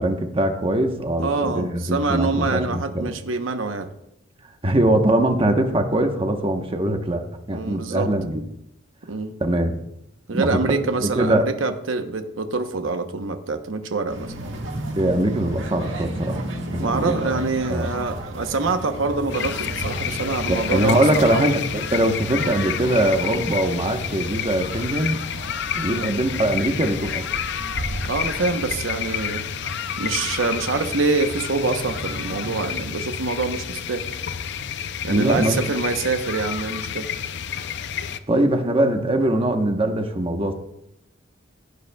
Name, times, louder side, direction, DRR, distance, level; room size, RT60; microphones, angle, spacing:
voice 1, 0.0-3.1 4.6-8.4 9.4-9.8 10.3-10.6 11.0-11.5 15.0-17.4 17.7-18.0 20.5-25.2 25.7-27.2 35.1-35.6 38.3-40.5, right 1 dB, 30° right, 5 dB, 1.0 m, -22 dB
voice 2, 1.2-3.9 7.5-8.1 9.1-9.4 10.3-14.3 16.8-21.5 25.9-26.1 28.0-29.4 30.0-34.0 35.0-37.1, right 3 dB, 85° right, 7 dB, 0.9 m, -25 dB
sound 1, 14.1-32.8, right 1 dB, 70° right, 1.8 m, -34 dB
sound 2, 19.3-38.2, left 8 dB, 65° left, 0.5 m, -30 dB
sound 3, 31.2-35.8, right 1 dB, 45° left, 3.1 m, -43 dB
16.5 x 9.5 x 2.3 m, 0.82 s
head